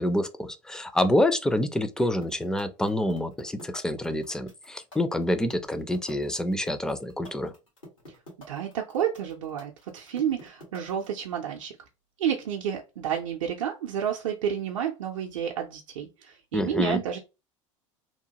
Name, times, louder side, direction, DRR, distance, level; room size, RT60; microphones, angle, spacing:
voice 1, 0.0-7.5 16.5-17.0, left 1 dB, 5° left, 0.4 m, -27 dB
sound 1, 2.0-11.2, left 1 dB, 90° left, 1.5 m, -47 dB
voice 2, 8.5-11.7 12.2-17.2, right 9 dB, 70° right, 0.5 m, -30 dB
2.9 x 2.2 x 2.8 m
hypercardioid pair, 80°, 17 cm